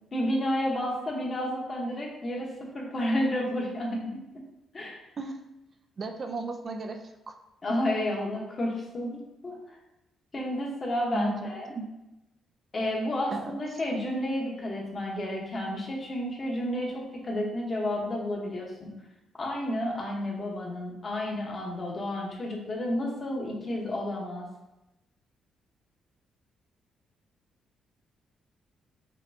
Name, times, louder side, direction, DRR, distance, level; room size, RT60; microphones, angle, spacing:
voice 1, 0.1-4.4 4.7-5.0 7.6-9.7 10.3-11.8 12.7-18.9 19.4-24.5, left 1 dB, 35° left, -2 dB, 1.0 m, -31 dB
voice 2, 6.0-7.4 11.1-11.9 13.3-13.6, right 3 dB, 45° right, 5 dB, 0.4 m, -35 dB
5.1 x 2.2 x 2.7 m, 0.95 s
cardioid pair, 90°, 0 cm